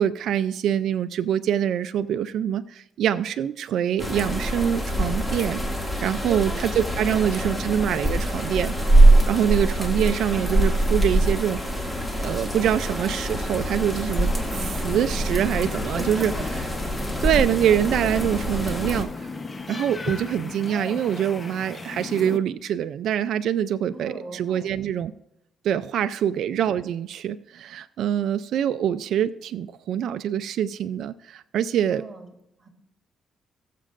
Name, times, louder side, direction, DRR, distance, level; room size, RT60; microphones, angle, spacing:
voice 1, 0.0-5.6 6.0-8.7 9.3-11.8 12.2-16.3 17.2-19.3 19.7-25.1 25.6-32.0, right 9 dB, 75° right, 11 dB, 0.4 m, -25 dB
sound 1, 4.0-19.0, right 1 dB, 10° left, 2.1 m, -23 dB
voice 2, 6.1-6.7 7.1-7.6 15.9-16.4 23.9-24.8 26.2-26.4 31.9-32.3 32.6-32.7, right 3 dB, 20° right, 1 dB, 2.8 m, -38 dB
sound 2, 14.1-22.4, left 3 dB, 30° left, 0.9 m, -36 dB
19.5 x 7.5 x 2.5 m, 0.83 s
cardioid pair, 90°, 0 cm